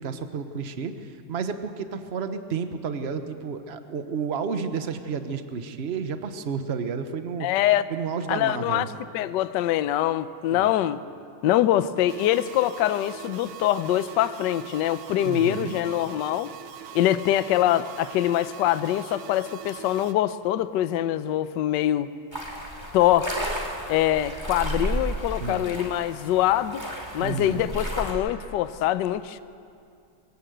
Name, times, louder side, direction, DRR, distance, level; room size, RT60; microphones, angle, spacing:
voice 1, 0.0-7.5 7.9-8.9 10.5-10.7 15.2-15.8 25.4-25.6 27.2-27.7, right 6 dB, 45° right, 0.9 m, -31 dB
voice 2, 7.4-7.8 8.3-8.9 9.1-11.0 11.4-16.5 16.9-22.1 22.9-23.4 23.9-26.8 27.1-29.4, left 13 dB, 70° left, 1.1 m, -24 dB
sound 1, 12.1-20.1, right 9 dB, 80° right, 1.8 m, -42 dB
sound 2, 22.3-28.1, right 1 dB, 10° right, 2.8 m, -33 dB
23.0 x 16.0 x 8.0 m
omnidirectional pair, 2.4 m